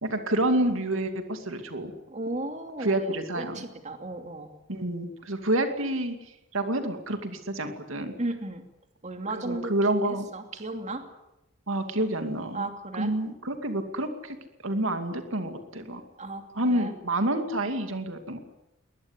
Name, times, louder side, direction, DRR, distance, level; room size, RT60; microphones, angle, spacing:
voice 1, 0.0-1.9 2.8-3.6 4.7-6.1 6.5-8.1 9.3-10.3 11.7-12.7 13.0-14.4 14.6-16.0 16.5-18.4, right 1 dB, 75° right, 7 dB, 2.5 m, -28 dB
voice 2, 2.1-4.5 8.2-8.6 9.0-9.7 10.3-11.0 12.5-13.1 16.2-16.9, right 2 dB, 35° right, 6 dB, 2.7 m, -35 dB
22.5 x 20.0 x 9.9 m, 0.89 s
head